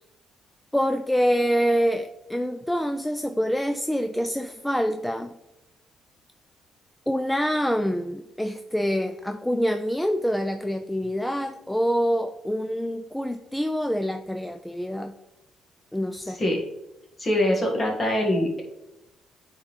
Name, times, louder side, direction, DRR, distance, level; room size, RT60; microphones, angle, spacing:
voice 1, 0.7-5.4 7.1-15.1 15.9-16.4, equal, 5° left, 7 dB, 0.4 m, -26 dB
voice 2, 16.3-16.6 17.2-18.6, left 1 dB, 30° left, 0 dB, 1.7 m, -23 dB
9.1 x 3.8 x 3.2 m, 0.90 s
cardioid pair, 90°, 0 cm